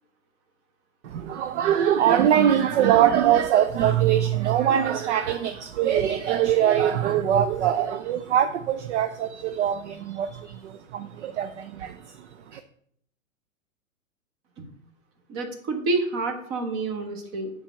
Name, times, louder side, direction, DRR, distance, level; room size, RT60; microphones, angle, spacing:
voice 1, 1.0-12.6, right 10 dB, 55° right, 9 dB, 0.6 m, -23 dB
voice 2, 15.3-17.5, right 3 dB, 30° right, 5 dB, 1.3 m, -28 dB
7.1 x 3.5 x 6.3 m, 0.67 s
figure-of-eight pair, 110°, 43 cm